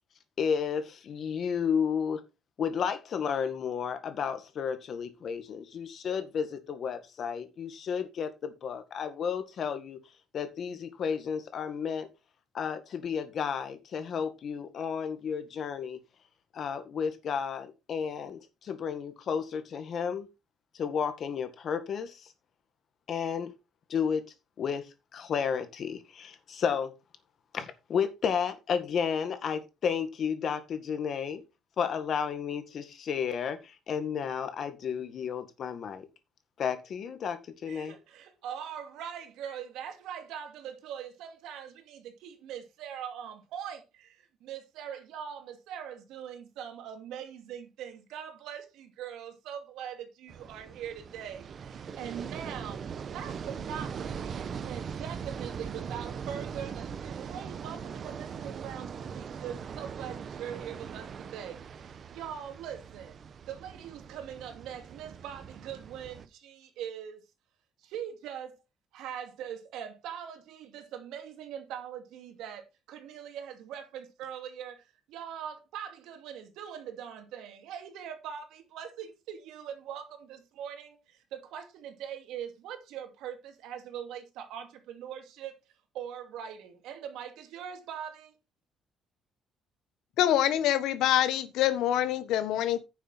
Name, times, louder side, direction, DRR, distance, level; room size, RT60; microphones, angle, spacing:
voice 1, 0.4-2.2 2.6-10.0 10.3-12.1 12.5-16.0 16.5-20.3 20.7-22.3 23.1-23.5 23.9-24.3 24.6-26.9 27.5-31.4 31.8-36.1 36.6-37.9, left 7 dB, 45° left, 1.8 m, -32 dB
voice 2, 37.7-67.2 67.8-68.6 68.9-85.6 85.9-88.3, right 9 dB, 85° right, 2.5 m, -42 dB
sound 1, 50.3-66.3, right 6 dB, 40° right, 0.9 m, -40 dB
voice 3, 90.2-92.8, left 12 dB, 80° left, 1.3 m, -25 dB
10.0 x 7.0 x 4.3 m
cardioid pair, 145°, 0 cm